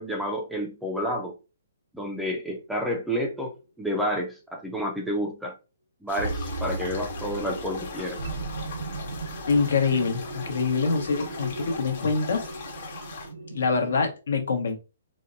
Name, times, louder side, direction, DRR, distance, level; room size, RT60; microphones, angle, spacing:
voice 1, 0.0-1.3 1.9-5.5 6.0-8.2, equal, ahead, 0.4 m, -30 dB
sound 1, 2.5-3.1 3.6-3.7 6.2-14.0, right 2 dB, 85° right, 0.8 m, -36 dB
sound 2, 6.1-13.3, left 5 dB, 50° left, 1.0 m, -40 dB
voice 2, 9.5-12.5 13.5-14.8, left 4 dB, 75° left, 1.0 m, -25 dB
4.0 x 2.1 x 2.6 m
hypercardioid pair, 165°, 0 cm